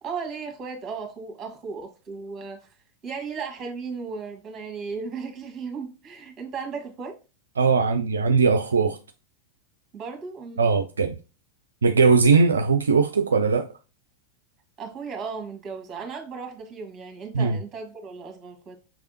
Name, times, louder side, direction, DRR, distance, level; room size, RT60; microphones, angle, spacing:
voice 1, 0.0-2.7 3.0-7.2 9.9-10.7 14.8-18.8, right 5 dB, 25° right, 1.4 m, -35 dB
voice 2, 7.6-9.0 10.6-11.2 11.8-13.7 17.3-17.6, right 4 dB, 70° right, 0.3 m, -20 dB
5.7 x 3.3 x 2.8 m
figure-of-eight pair, 90°, 0 cm